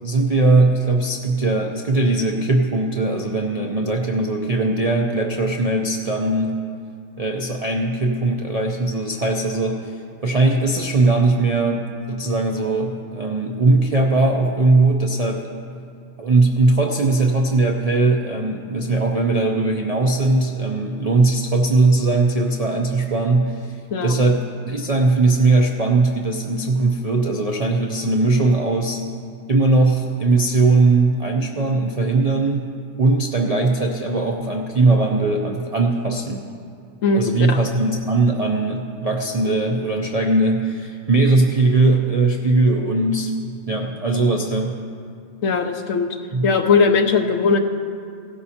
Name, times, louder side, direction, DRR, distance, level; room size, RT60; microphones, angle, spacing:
voice 1, 0.0-6.6 7.2-10.0 10.2-15.5 16.2-29.0 29.5-32.7 33.0-36.5 37.1-43.3 43.7-44.8 46.3-46.5, right 3 dB, 50° right, 1 dB, 0.4 m, -19 dB
voice 2, 37.0-37.6 45.4-46.1 46.4-47.6, left 4 dB, 70° left, 4 dB, 1.1 m, -19 dB
16.5 x 12.0 x 2.8 m, 2.3 s
omnidirectional pair, 1.5 m